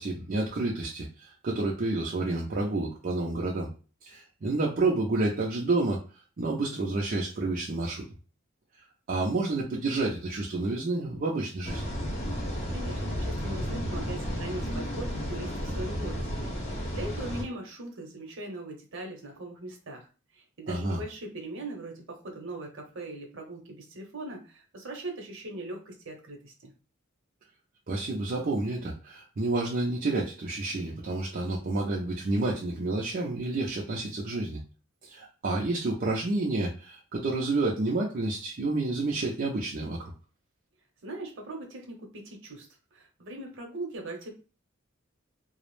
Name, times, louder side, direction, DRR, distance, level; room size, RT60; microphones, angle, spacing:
voice 1, 0.0-3.7 4.0-6.0 6.4-8.0 9.1-11.8 20.7-21.0 27.9-34.6 35.1-40.1, right 2 dB, 45° right, -3 dB, 0.5 m, -29 dB
sound 1, 11.6-17.4, equal, 35° left, 0.7 m, -32 dB
voice 2, 12.7-20.1 20.3-26.7 41.0-44.3, right 2 dB, 65° right, 2 dB, 0.8 m, -40 dB
2.3 x 2.0 x 3.1 m, 0.35 s
head